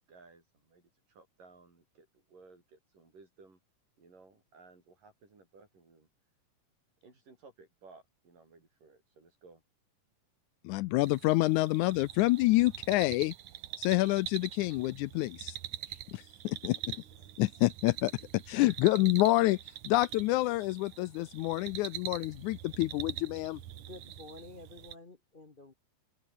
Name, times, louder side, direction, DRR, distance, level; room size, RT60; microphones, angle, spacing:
voice 1, 0.1-3.6 4.0-6.1 7.0-9.6, right 4 dB, 90° right, 9.2 m, -58 dB
voice 2, 10.6-13.3 13.8-15.6 16.1-17.0 17.4-19.6 19.8-23.6, left 19 dB, 80° left, 1.9 m, -28 dB
sound 1, 11.0-24.9, right 12 dB, 70° right, 2.6 m, -44 dB
voice 3, 23.7-25.7, left 2 dB, 40° left, 0.7 m, -50 dB
open air
omnidirectional pair, 3.7 m